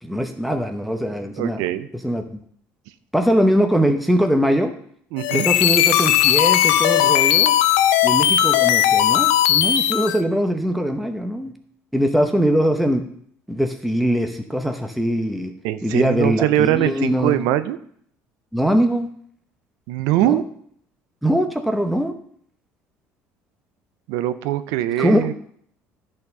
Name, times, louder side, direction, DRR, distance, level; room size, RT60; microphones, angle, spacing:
voice 1, 0.0-1.6 1.9-2.4 3.1-4.7 5.3-7.5 8.0-11.5 11.9-13.0 13.5-15.5 15.8-17.5 18.5-19.1 20.2-20.4 21.2-22.1 25.0-25.3, equal, ahead, 5 dB, 0.8 m, -21 dB
voice 2, 1.4-1.9 5.1-5.5 15.6-17.8 19.9-20.4 24.1-25.3, right 13 dB, 80° right, 13 dB, 0.5 m, -22 dB
sound 1, 5.2-10.2, left 12 dB, 90° left, 0.4 m, -17 dB
10.5 x 4.3 x 5.4 m, 0.64 s
supercardioid pair, 90°, 6 cm